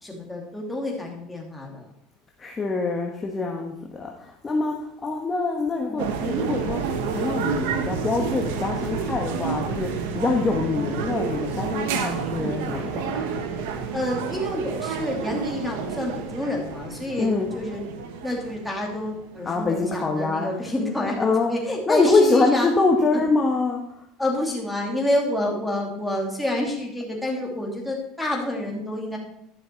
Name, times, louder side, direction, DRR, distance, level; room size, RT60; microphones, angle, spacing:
voice 1, 0.0-1.9 5.9-6.1 13.9-17.9 18.2-22.7 23.1-23.2 24.2-29.2, left 1 dB, 5° left, -2 dB, 2.6 m, -28 dB
voice 2, 2.4-4.8 5.0-13.3 17.2-17.5 19.4-20.5 21.0-21.5 21.9-23.8, left 3 dB, 20° left, 0 dB, 1.3 m, -24 dB
sound 1, 6.0-19.4, right 6 dB, 80° right, 1.3 m, -29 dB
11.5 x 6.4 x 4.6 m, 0.77 s
supercardioid pair, 125°, 0 cm